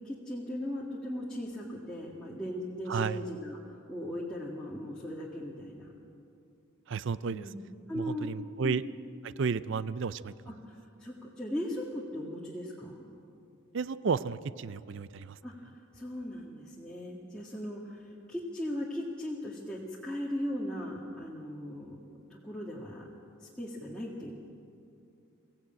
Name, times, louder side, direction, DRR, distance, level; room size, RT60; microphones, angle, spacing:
voice 1, 0.0-5.9 7.3-7.6 7.9-8.3 8.6-8.8 10.5-13.1 15.4-23.1 23.4-24.3, equal, 5° left, -6 dB, 1.9 m, -38 dB
voice 2, 6.9-7.5 7.9-8.8 9.2-10.3 13.7-15.4, right 5 dB, 55° right, 15 dB, 0.5 m, -32 dB
23.5 x 16.0 x 8.8 m, 2.6 s
head